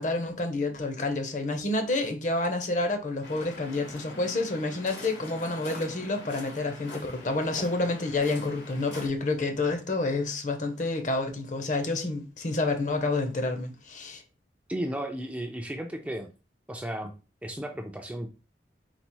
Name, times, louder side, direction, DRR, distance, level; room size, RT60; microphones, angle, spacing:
voice 1, 0.0-14.2, left 2 dB, 45° left, 0.7 m, -29 dB
Waves surf, 3.2-9.1, left 2 dB, 85° left, 1.7 m, -43 dB
voice 2, 14.7-16.3 16.7-17.1 17.4-18.3, right 1 dB, 10° right, 0.4 m, -34 dB
4.0 x 2.0 x 4.4 m
head